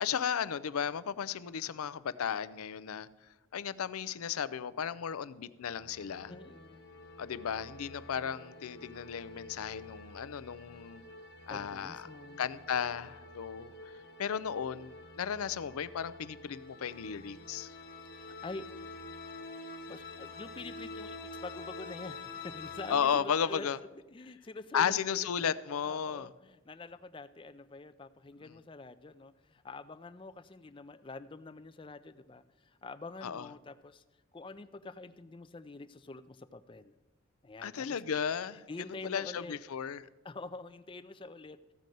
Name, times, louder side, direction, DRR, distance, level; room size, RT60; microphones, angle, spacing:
voice 1, 0.0-3.1 3.5-6.3 7.2-11.0 11.5-12.1 12.4-13.9 14.2-17.7 22.9-23.8 24.7-26.3 33.2-33.5 37.6-38.6 39.0-40.1, left 7 dB, 85° left, 17 dB, 0.5 m, -34 dB
sound 1, 5.6-23.0, left 3 dB, 50° left, 1.2 m, -48 dB
voice 2, 6.3-6.8 11.5-12.5 18.1-18.7 19.9-23.7 24.1-24.9 25.4-25.6 25.8-34.0 34.3-36.9 37.4-38.0 38.7-39.5 40.2-41.7, left 3 dB, 25° left, 12 dB, 0.4 m, -46 dB
14.5 x 5.3 x 7.6 m, 1.1 s
head